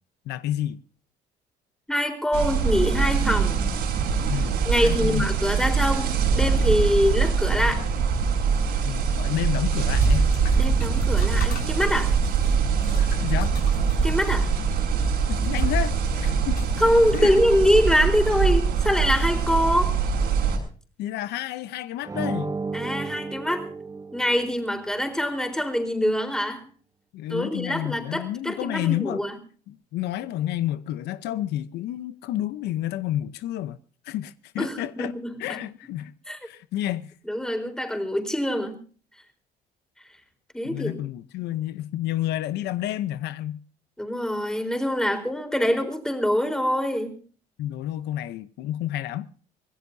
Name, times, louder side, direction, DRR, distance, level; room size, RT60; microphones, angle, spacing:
voice 1, 0.3-0.8 4.3-4.6 4.8-5.3 7.8-7.9 8.8-10.3 13.2-13.5 15.3-16.6 17.1-17.3 21.0-22.6 27.1-29.3 29.7-33.8 34.0-35.1 35.4-36.1 36.4-37.1 40.6-43.6 47.6-49.3, left 13 dB, 80° left, 0.8 m, -30 dB
voice 2, 1.9-3.6 4.6-7.8 10.6-12.1 14.0-14.5 16.8-19.9 22.7-23.7 24.1-26.6 27.3-29.4 34.6-35.6 36.3-36.4 37.2-38.7 40.5-41.0 44.0-47.2, equal, 5° left, 4.0 m, -24 dB
sound 1, 2.3-20.6, right 5 dB, 70° right, 6.4 m, -23 dB
sound 2, 9.8-17.7, left 7 dB, 65° left, 6.3 m, -46 dB
sound 3, 22.0-24.7, right 4 dB, 20° right, 1.0 m, -33 dB
25.0 x 17.5 x 2.7 m
cardioid pair, 110°, 17 cm